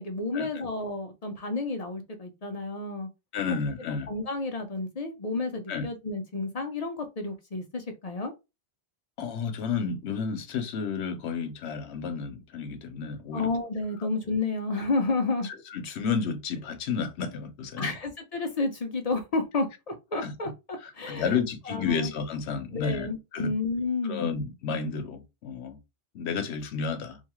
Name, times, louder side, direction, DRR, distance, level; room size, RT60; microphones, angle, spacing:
voice 1, 0.0-3.1 4.1-8.3 13.3-15.5 17.8-21.4 21.7-22.1 22.7-24.3, left 3 dB, 50° left, 0.5 m, -31 dB
voice 2, 3.3-4.1 5.7-5.9 9.2-13.5 15.4-17.9 20.2-20.3 20.8-23.5 24.1-25.8 26.1-27.2, left 5 dB, 75° left, 0.9 m, -31 dB
2.7 x 2.3 x 2.9 m
omnidirectional pair, 1.2 m